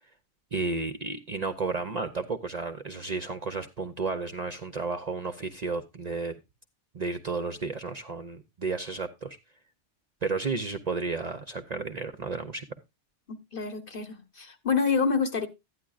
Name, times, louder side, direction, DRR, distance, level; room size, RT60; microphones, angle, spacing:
voice 1, 0.5-6.3 6.9-9.4 10.2-12.7, right 4 dB, 40° right, 0.7 m, -32 dB
voice 2, 13.3-15.5, left 5 dB, 50° left, 1.3 m, -27 dB
12.5 x 9.7 x 2.4 m
omnidirectional pair, 1.2 m